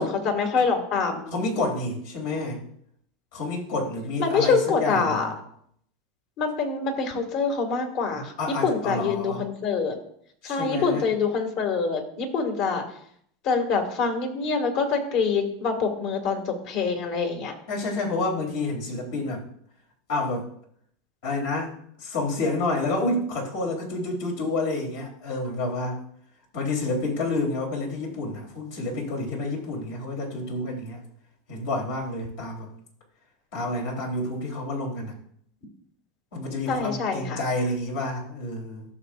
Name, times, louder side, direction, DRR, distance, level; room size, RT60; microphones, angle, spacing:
voice 1, 0.0-1.3 4.2-5.3 6.4-8.3 8.6-10.0 10.4-12.8 13.4-17.5 36.7-37.4, left 5 dB, 60° left, 4 dB, 2.2 m, -25 dB
voice 2, 1.3-2.6 3.3-5.3 8.4-9.4 10.4-11.0 17.7-19.4 20.1-20.5 21.2-21.7 22.0-26.0 26.5-31.0 31.5-32.7 33.5-35.1 36.3-38.9, left 2 dB, 75° left, -1 dB, 3.5 m, -29 dB
15.0 x 6.8 x 2.6 m, 0.66 s
hypercardioid pair, 105°, 0 cm